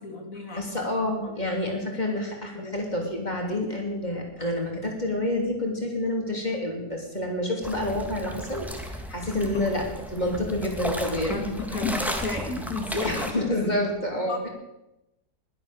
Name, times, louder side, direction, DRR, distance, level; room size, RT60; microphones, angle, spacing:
voice 1, 0.0-0.8 1.2-1.4 2.1-2.2 2.6-2.7 11.3-13.3 14.2-14.5, left 3 dB, 50° left, 2 dB, 2.8 m, -32 dB
voice 2, 0.6-9.8 10.1-11.4 13.0-14.5, left 1 dB, 25° left, 0 dB, 3.1 m, -28 dB
sound 1, 7.6-13.3, equal, ahead, 1.5 m, -34 dB
20.5 x 7.9 x 7.0 m, 0.93 s
omnidirectional pair, 1.8 m